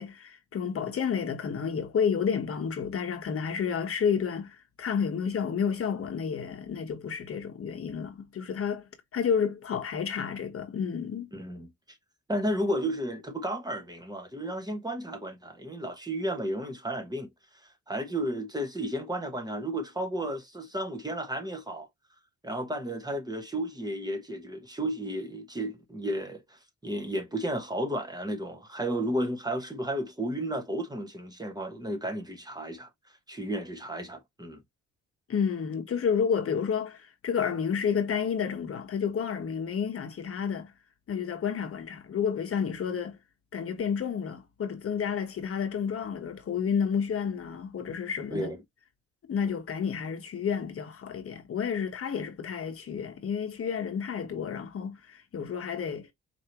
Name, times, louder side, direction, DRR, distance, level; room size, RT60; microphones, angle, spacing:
voice 1, 0.0-11.3 35.3-40.7 41.1-43.2 43.5-48.5 49.3-56.1, left 7 dB, 50° left, 1.1 m, -30 dB
voice 2, 11.3-11.7 12.3-17.3 17.9-21.9 22.4-32.9 33.3-34.6 48.3-48.6, right 1 dB, 15° right, 1.0 m, -33 dB
4.6 x 2.9 x 2.9 m
cardioid pair, 90°, 30 cm